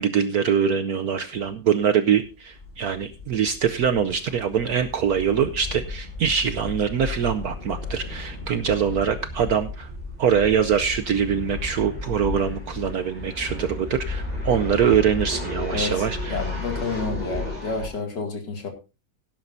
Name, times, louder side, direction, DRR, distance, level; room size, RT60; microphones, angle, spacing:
voice 1, 0.0-9.9 10.2-16.4, right 7 dB, 65° right, 10 dB, 1.0 m, -23 dB
sound 1, 1.3-1.5 1.7-1.8 2.2-17.9, left 2 dB, 20° left, 5.8 m, -34 dB
voice 2, 15.7-18.7, left 3 dB, 60° left, 4 dB, 2.8 m, -30 dB
17.5 x 10.5 x 2.7 m, 0.30 s
omnidirectional pair, 2.1 m